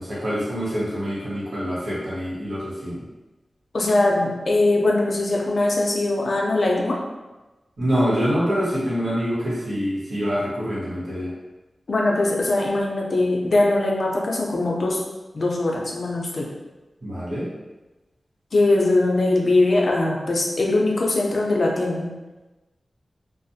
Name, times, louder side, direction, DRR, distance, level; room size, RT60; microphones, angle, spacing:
voice 1, 0.0-3.0 7.8-11.3 17.0-17.5, equal, 70° right, -9 dB, 1.0 m, -25 dB
voice 2, 3.7-7.0 11.9-15.0 15.3-16.5 18.5-22.1, left 2 dB, 60° left, -2 dB, 0.4 m, -21 dB
2.4 x 2.0 x 2.6 m, 1.1 s
wide cardioid pair, 95°, 0 cm